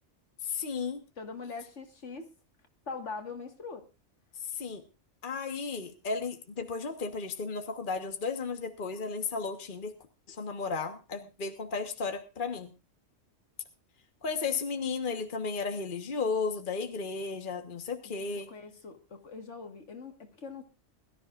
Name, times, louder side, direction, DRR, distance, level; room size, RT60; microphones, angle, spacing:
voice 1, 0.4-1.0 4.5-4.8 5.2-10.0 10.3-12.7 14.2-18.5, left 4 dB, 40° left, 1.5 m, -34 dB
voice 2, 1.2-2.3 2.9-3.9 18.0-20.6, left 4 dB, 70° left, 2.1 m, -42 dB
22.0 x 13.5 x 2.5 m
omnidirectional pair, 1.3 m